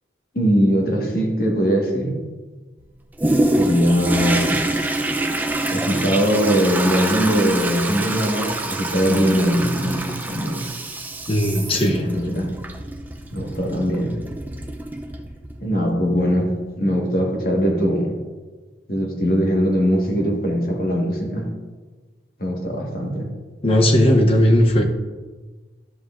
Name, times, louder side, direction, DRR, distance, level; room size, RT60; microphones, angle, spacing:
voice 1, 0.3-2.2 3.5-4.9 5.7-10.7 12.0-12.6 13.3-14.2 15.6-18.2 18.9-21.5 22.4-23.3, equal, 55° left, 0 dB, 1.4 m, -21 dB
Toilet flush, 3.2-15.6 16.1-16.2, right 1 dB, 10° right, 0.4 m, -26 dB
voice 2, 11.3-12.1 23.6-24.8, equal, 30° left, 3 dB, 0.7 m, -16 dB
11.5 x 7.6 x 2.5 m, 1.4 s
head